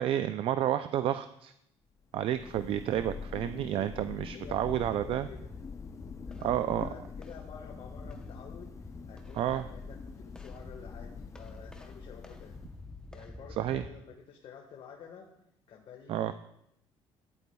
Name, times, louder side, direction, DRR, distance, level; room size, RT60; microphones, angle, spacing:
voice 1, 0.0-1.5 2.1-5.3 6.4-6.9 9.4-9.6 13.6-13.8 16.1-16.3, right 11 dB, 55° right, 11 dB, 0.4 m, -30 dB
Thunder, 2.0-13.1, left 5 dB, 30° left, 0.5 m, -45 dB
voice 2, 4.2-5.5 6.3-12.5 13.1-15.3 15.7-16.3, left 6 dB, 55° left, 0 dB, 1.4 m, -50 dB
sound 1, 4.4-13.9, left 2 dB, 5° left, 0.8 m, -48 dB
14.0 x 11.5 x 2.3 m, 0.79 s
cardioid pair, 120°, 11 cm